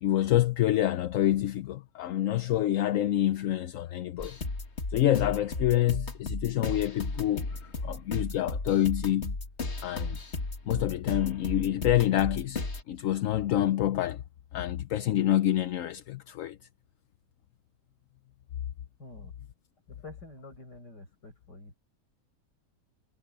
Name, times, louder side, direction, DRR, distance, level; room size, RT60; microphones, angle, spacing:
voice 1, 0.0-4.4 4.9-7.5 7.8-9.3 9.8-10.2 10.7-12.6 12.9-14.2 14.5-16.6, left 13 dB, 65° left, 0.9 m, -27 dB
sound 1, 4.2-12.8, left 3 dB, 40° left, 2.4 m, -35 dB
voice 2, 19.0-19.3 19.9-21.8, left 2 dB, 80° left, 8.1 m, -48 dB
omnidirectional pair, 1.8 m